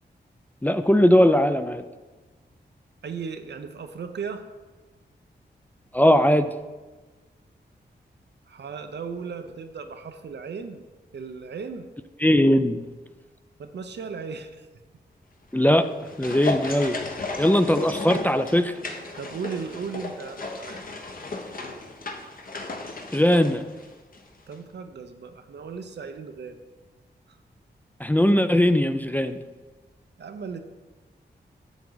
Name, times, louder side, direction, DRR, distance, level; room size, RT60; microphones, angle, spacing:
voice 1, 0.6-1.8 5.9-6.5 12.2-12.8 15.5-15.8 16.2-17.0 17.4-18.8 23.1-23.6 28.0-29.4, equal, 10° left, 10 dB, 0.4 m, -19 dB
voice 2, 3.0-4.4 8.5-10.9 11.1-11.9 13.6-14.7 17.3-17.4 19.2-20.8 24.5-26.6 27.3-27.4 30.2-30.6, right 5 dB, 70° right, 7 dB, 0.7 m, -36 dB
sound 1, 15.6-24.3 24.5-24.6, left 2 dB, 50° left, 1.0 m, -34 dB
7.3 x 7.1 x 4.0 m, 1.3 s
cardioid pair, 60°, 18 cm